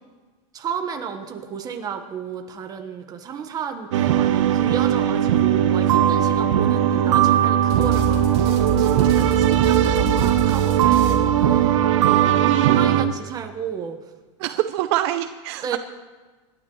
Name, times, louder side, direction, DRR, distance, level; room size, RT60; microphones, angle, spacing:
voice 1, 0.5-14.0 15.6-15.8, right 7 dB, 25° right, 5 dB, 1.4 m, -33 dB
sound 1, 3.9-13.0, right 10 dB, 90° right, 1.1 m, -19 dB
voice 2, 6.6-7.5 12.5-13.1 14.4-15.8, right 14 dB, 60° right, 10 dB, 0.6 m, -25 dB
sound 2, 7.7-12.0, right 3 dB, 40° right, 3.2 m, -28 dB
27.0 x 12.0 x 3.2 m, 1.3 s
supercardioid pair, 145°, 16 cm